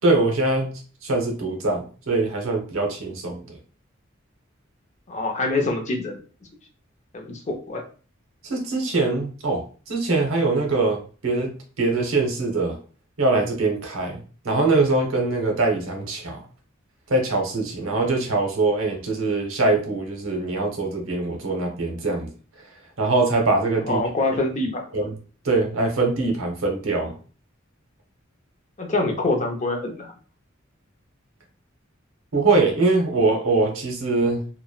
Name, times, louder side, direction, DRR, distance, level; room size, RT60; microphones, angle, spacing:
voice 1, 0.0-0.7 1.0-3.6 8.4-12.8 13.2-16.4 17.1-22.3 23.0-24.0 24.9-25.1 25.4-27.1 32.3-34.4, right 3 dB, 90° right, 2 dB, 0.8 m, -23 dB
voice 2, 5.1-6.2 7.1-7.8 23.9-24.9 28.8-30.1, left 2 dB, 35° left, 2 dB, 0.5 m, -25 dB
2.9 x 2.2 x 2.3 m, 0.38 s
head